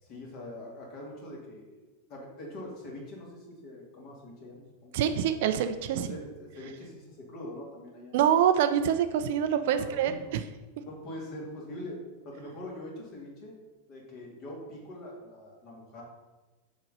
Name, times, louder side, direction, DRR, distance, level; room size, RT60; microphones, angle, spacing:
voice 1, 0.0-1.8 2.1-5.0 5.9-8.1 9.7-10.3 10.8-12.0 12.2-13.5 13.9-16.0, left 1 dB, 40° left, -2 dB, 2.3 m, -43 dB
voice 2, 4.9-6.1 8.1-10.4, right 9 dB, 50° right, 10 dB, 0.4 m, -25 dB
6.5 x 4.0 x 5.3 m, 1.2 s
figure-of-eight pair, 90°, 0 cm